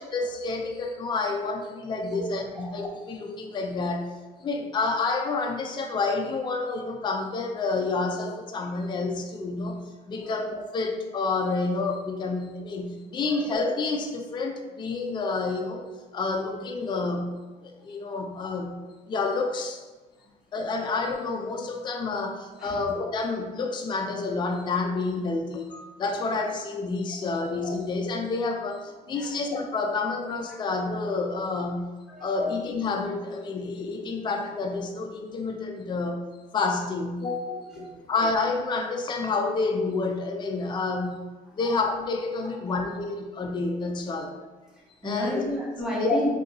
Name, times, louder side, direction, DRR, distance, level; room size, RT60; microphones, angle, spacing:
voice 1, 0.1-4.1 4.4-9.8 10.1-15.9 16.1-17.4 17.6-18.8 19.1-19.8 20.5-31.9 32.2-36.2 36.5-41.3 41.5-44.4 45.0-45.4 46.0-46.2, left 3 dB, 25° left, 2 dB, 0.4 m, -29 dB
voice 2, 37.5-38.0 41.6-41.7 44.7-46.3, equal, 5° right, -6 dB, 1.1 m, -33 dB
2.7 x 2.6 x 3.8 m, 1.2 s
cardioid pair, 110°, 17 cm